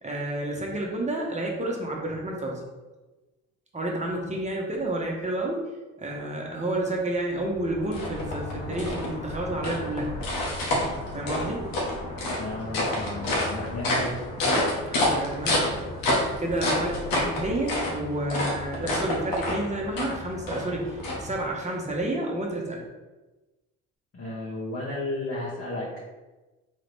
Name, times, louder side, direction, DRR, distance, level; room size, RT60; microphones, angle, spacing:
voice 1, 0.0-2.6 3.7-5.6 6.0-10.1 11.1-11.7 14.9-16.0 16.4-22.8, right 1 dB, 20° right, -1 dB, 1.2 m, -30 dB
sound 1, 7.2-21.7, left 1 dB, 75° left, 1.2 m, -29 dB
voice 2, 12.4-14.1 24.1-26.0, left 2 dB, 40° left, -7 dB, 1.4 m, -33 dB
3.8 x 3.2 x 3.4 m, 1.1 s
supercardioid pair, 60°, 35 cm